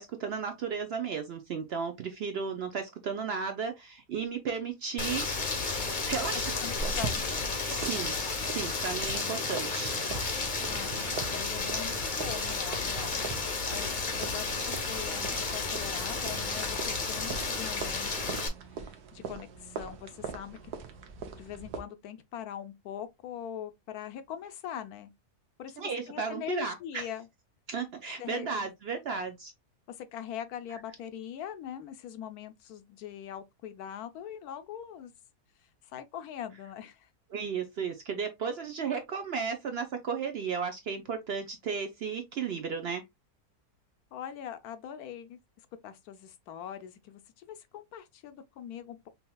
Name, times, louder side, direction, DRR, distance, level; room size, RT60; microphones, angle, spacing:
voice 1, 0.0-5.3 6.0-6.6 7.6-8.2 8.4-10.0 25.8-27.1 27.7-29.5 37.3-43.0, right 6 dB, 65° right, 0.6 m, -34 dB
Rain, 5.0-18.5, left 4 dB, 40° left, 0.8 m, -32 dB
voice 2, 6.6-7.2 10.7-20.6 21.4-25.1 25.6-27.3 28.2-28.7 29.9-35.1 35.8-37.1 44.1-45.4 45.8-49.1, left 9 dB, 80° left, 1.1 m, -42 dB
sound 1, 6.7-21.8, right 6 dB, 85° right, 1.3 m, -42 dB
5.4 x 2.8 x 2.3 m
omnidirectional pair, 1.6 m